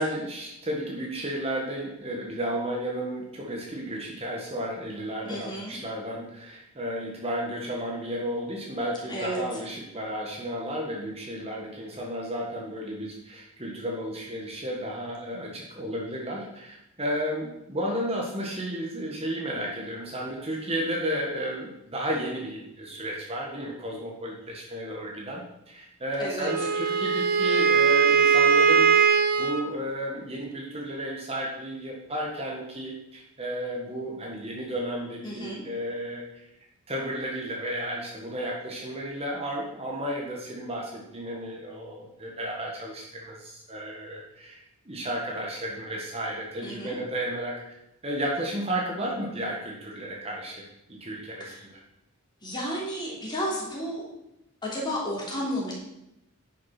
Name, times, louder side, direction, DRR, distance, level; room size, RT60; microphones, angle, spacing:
voice 1, 0.0-28.9 29.4-36.4 36.9-44.6 44.8-47.5 48.0-51.5, equal, 25° right, -1 dB, 1.6 m, -33 dB
voice 2, 5.2-5.7 9.1-9.4 26.2-26.5 35.2-35.6 46.6-47.0 51.4-51.6 52.4-54.0 54.6-55.7, equal, 20° left, -4 dB, 3.3 m, -32 dB
Wind instrument woodwind instrument, 26.4-29.7, right 6 dB, 45° right, 0.7 m, -20 dB
9.9 x 6.5 x 5.9 m, 0.85 s
head